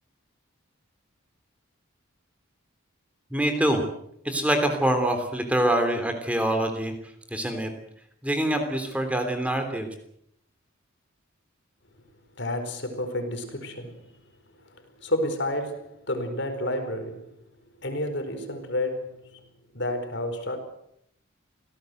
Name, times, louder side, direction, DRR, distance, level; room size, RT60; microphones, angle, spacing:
voice 1, 3.3-3.8 4.2-6.9 7.3-7.7 8.2-9.9, right 1 dB, 5° right, 3.3 m, -25 dB
voice 2, 12.4-14.1 14.6-17.3 17.8-19.4 19.7-20.6, left 1 dB, 55° left, 4.7 m, -30 dB
27.0 x 17.5 x 8.0 m
head